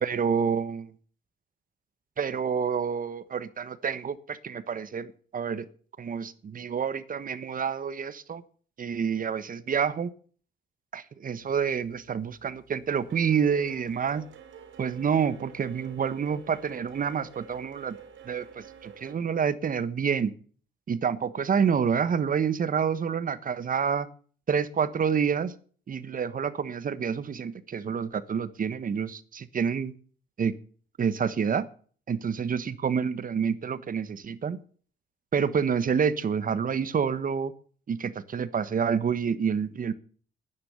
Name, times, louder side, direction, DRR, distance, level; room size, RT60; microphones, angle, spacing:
voice 1, 0.0-0.9 2.2-5.6 6.0-8.4 8.8-10.1 10.9-14.2 14.8-18.0 18.2-20.3 20.9-24.1 24.5-25.5 25.9-29.9 30.4-30.5 31.0-31.7 32.1-34.6 35.3-37.5 37.9-39.9, right 6 dB, 45° right, 16 dB, 1.3 m, -28 dB
sound 1, 11.6-12.0 12.3-19.1, right 7 dB, 75° right, 3.6 m, -49 dB
11.0 x 10.0 x 7.0 m, 0.44 s
cardioid pair, 90°, 20 cm